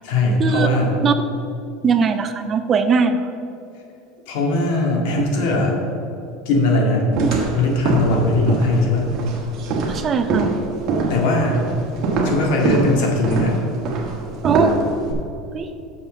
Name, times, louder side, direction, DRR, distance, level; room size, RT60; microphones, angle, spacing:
voice 1, 0.0-0.9 4.3-5.7 6.5-7.1 7.5-9.1 11.1-11.6 12.2-13.6, left 2 dB, 65° left, -1 dB, 2.1 m, -19 dB
voice 2, 1.8-3.2 5.2-5.3 7.2-7.3 9.9-10.5 14.4-14.7 15.5-15.7, right 5 dB, 30° right, 9 dB, 0.5 m, -19 dB
sound 1, 7.1-15.1, right 3 dB, 45° right, 1.6 m, -23 dB
6.6 x 5.4 x 6.8 m, 2.6 s
supercardioid pair, 130°, 0 cm